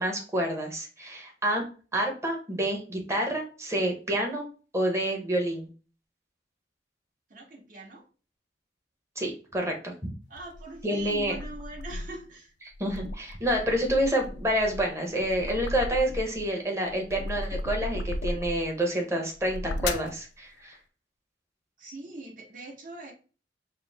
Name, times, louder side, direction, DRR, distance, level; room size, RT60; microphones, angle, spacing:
voice 1, 0.0-1.6 1.9-4.5 4.7-5.7 9.2-10.1 10.8-11.3 12.8-20.8, right 1 dB, 15° right, 1 dB, 1.0 m, -28 dB
voice 2, 7.3-8.1 10.3-12.5 21.8-23.1, right 2 dB, 50° right, -2 dB, 1.4 m, -42 dB
sound 1, 10.4-12.2 12.7-16.5 16.9-18.7 19.3-20.2, left 2 dB, 75° left, 0.4 m, -35 dB
4.5 x 2.1 x 3.5 m, 0.36 s
head